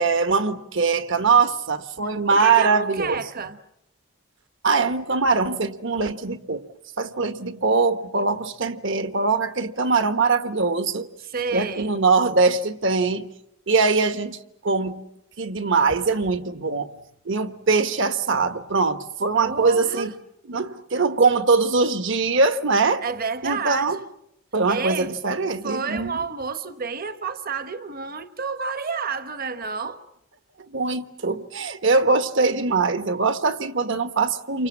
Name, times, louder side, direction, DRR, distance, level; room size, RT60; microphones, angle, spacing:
voice 1, 0.0-3.2 4.6-6.7 7.0-11.1 11.5-13.3 13.7-15.0 15.4-16.9 17.2-20.1 20.5-23.0 23.4-24.0 24.5-26.2 30.7-34.7, right 4 dB, 60° right, 1.4 m, -22 dB
voice 2, 2.3-3.6 11.2-11.9 19.4-20.1 23.0-24.1 24.7-25.1 25.6-30.0, right 5 dB, 45° right, 1.1 m, -30 dB
29.0 x 24.5 x 7.2 m
head